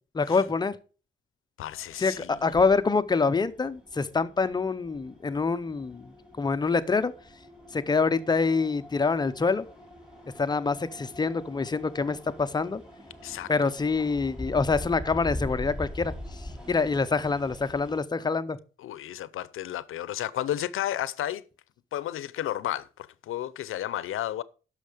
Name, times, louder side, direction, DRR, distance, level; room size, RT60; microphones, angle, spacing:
voice 1, 0.1-0.7 2.0-6.1 6.4-7.1 7.7-9.7 10.4-12.8 13.5-16.1 16.7-18.6, left 4 dB, 20° left, 0.6 m, -26 dB
voice 2, 1.6-2.4 13.2-13.5 18.8-21.4 21.9-22.9 23.2-24.4, left 12 dB, 80° left, 0.6 m, -32 dB
sound 1, 1.6-18.0, left 1 dB, 5° right, 3.1 m, -43 dB
10.5 x 6.4 x 5.0 m
wide cardioid pair, 150°, 21 cm